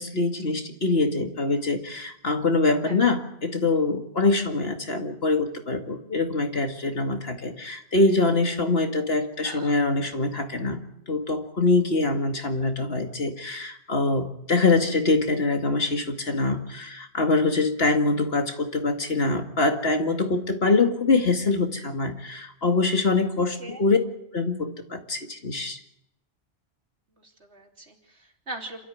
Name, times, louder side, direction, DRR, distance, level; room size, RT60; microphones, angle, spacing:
voice 1, 0.0-10.8 11.1-24.0 24.3-25.8, left 3 dB, 65° left, 4 dB, 2.4 m, -24 dB
voice 2, 23.4-23.8 27.2-28.9, right 2 dB, 80° right, 1 dB, 3.6 m, -41 dB
27.5 x 13.5 x 9.5 m, 0.78 s
omnidirectional pair, 1.1 m